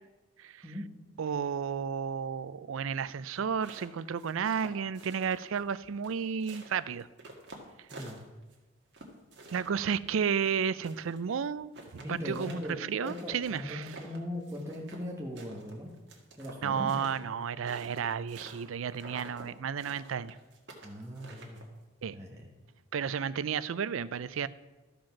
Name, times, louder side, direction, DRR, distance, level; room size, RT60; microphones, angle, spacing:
voice 1, 1.2-7.1 7.8-7.9 9.5-13.9 16.6-20.4 22.0-22.2 22.9-24.5, right 7 dB, 80° right, 16 dB, 0.4 m, -32 dB
sound 1, 3.4-5.7 6.0-8.6 8.9-11.2 11.5-11.6 11.7-15.1 15.4-18.7 18.9-19.5 19.8-21.8, right 2 dB, 55° right, 1.7 m, -49 dB
voice 2, 7.9-8.2 12.0-15.9 16.4-17.1 20.8-21.6 22.1-22.5, left 1 dB, 15° right, -2 dB, 1.2 m, -39 dB
13.0 x 5.1 x 5.9 m, 1.2 s
head